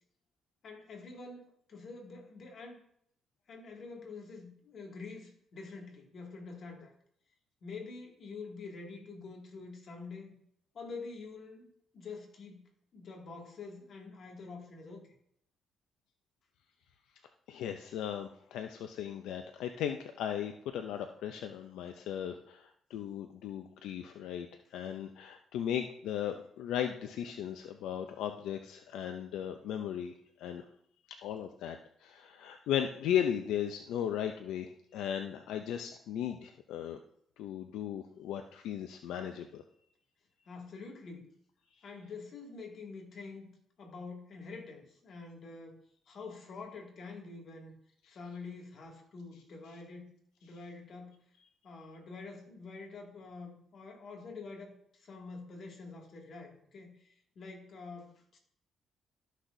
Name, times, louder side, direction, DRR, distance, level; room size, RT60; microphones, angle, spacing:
voice 1, 0.6-2.8 3.5-6.9 7.6-10.3 10.7-11.7 11.9-12.6 12.9-15.0 40.5-41.3 41.8-43.5 43.8-45.8 46.1-47.7 48.1-50.1 50.4-51.2 51.6-58.4, left 4 dB, 55° left, 0 dB, 2.2 m, -46 dB
voice 2, 17.5-30.1 30.4-30.6 31.2-37.0 37.4-39.6 48.1-48.2, left 9 dB, 85° left, 6 dB, 0.5 m, -36 dB
13.0 x 6.2 x 2.7 m, 0.68 s
cardioid pair, 90°, 0 cm